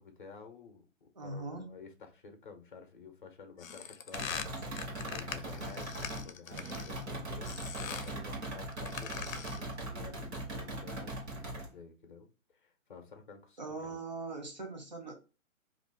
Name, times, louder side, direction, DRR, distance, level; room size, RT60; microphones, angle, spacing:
voice 1, 0.0-7.5 7.8-14.0, left 5 dB, 40° left, 0.6 m, -52 dB
voice 2, 1.2-1.7 13.6-15.1, right 3 dB, 35° right, 0.5 m, -41 dB
sound 1, 3.6-7.0 7.4-8.2 8.7-9.7, left 7 dB, 85° left, 0.5 m, -42 dB
sound 2, 4.1-6.3 6.7-11.7, right 1 dB, 55° right, 1.1 m, -40 dB
sound 3, 4.1-9.0, right 4 dB, 80° right, 0.9 m, -54 dB
2.5 x 2.3 x 3.4 m
hypercardioid pair, 175°, 39 cm